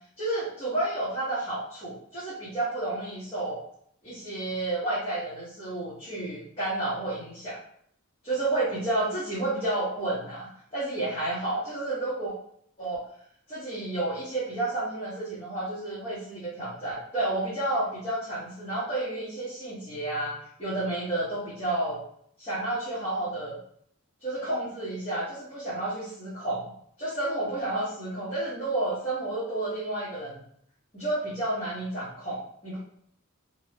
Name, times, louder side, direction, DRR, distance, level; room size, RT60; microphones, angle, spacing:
voice 1, 0.2-3.6 4.0-7.6 8.2-12.3 12.8-13.0 13.5-22.0 22.4-23.6 24.2-26.7 27.0-30.4 30.9-32.8, right 2 dB, 25° left, -11 dB, 0.9 m, -31 dB
2.6 x 2.1 x 3.2 m, 0.66 s
head